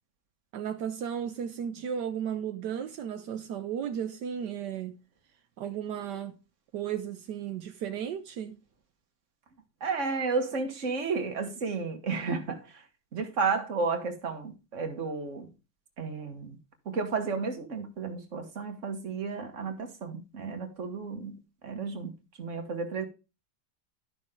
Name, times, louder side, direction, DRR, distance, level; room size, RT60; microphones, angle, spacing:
voice 1, 0.5-5.0 5.6-6.4 6.7-8.6, right 8 dB, 75° right, 1.4 m, -34 dB
voice 2, 9.8-12.8 13.1-15.5 16.0-16.6 16.9-22.1 22.4-23.1, right 4 dB, 45° right, 1.9 m, -32 dB
12.0 x 6.3 x 3.7 m
omnidirectional pair, 1.9 m